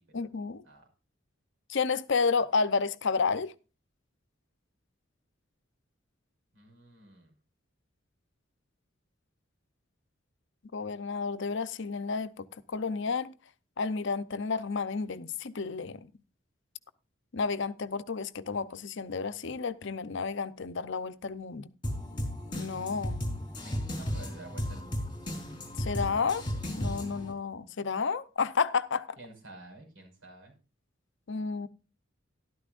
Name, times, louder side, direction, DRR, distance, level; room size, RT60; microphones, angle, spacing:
voice 1, 0.1-0.6 1.7-3.5 10.7-13.3 13.8-16.1 17.3-21.7 22.5-23.2 25.8-29.1 31.3-31.7, left 5 dB, 65° left, 0.7 m, -31 dB
voice 2, 6.5-7.3 23.6-25.2 29.2-30.5, right 1 dB, 85° right, 5.8 m, -50 dB
sound 1, 21.8-27.3, equal, 25° left, 3.8 m, -35 dB
13.5 x 12.0 x 2.5 m
head